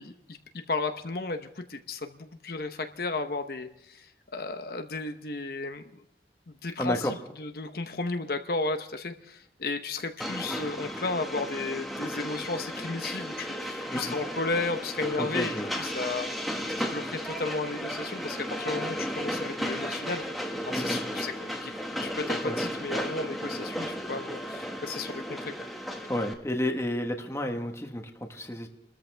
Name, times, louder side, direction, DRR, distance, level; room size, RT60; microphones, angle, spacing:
voice 1, 0.0-6.0 6.5-16.3 16.8-20.3 20.7-25.7, left 3 dB, 55° left, 7 dB, 0.9 m, -34 dB
voice 2, 6.8-7.1 13.9-14.2 15.2-15.7 20.7-21.0 22.4-22.6 26.1-28.7, left 1 dB, 15° left, 4 dB, 1.3 m, -31 dB
Train, 10.2-26.3, equal, ahead, 1.6 m, -34 dB
29.0 x 13.5 x 3.4 m, 0.74 s
head